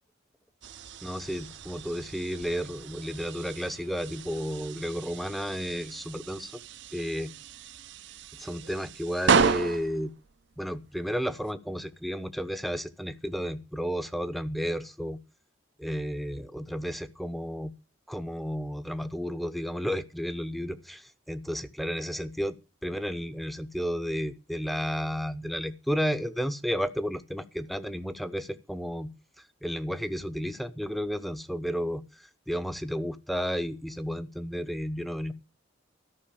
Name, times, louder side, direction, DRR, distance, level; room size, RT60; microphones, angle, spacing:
sound 1, 0.6-11.5, right 6 dB, 60° right, 0.6 m, -33 dB
voice 1, 1.0-6.5 6.9-7.3 8.4-10.1 10.6-15.2 15.8-17.7 18.1-22.6 22.8-29.1 29.6-35.3, equal, ahead, 0.7 m, -32 dB
13.5 x 6.0 x 8.7 m
head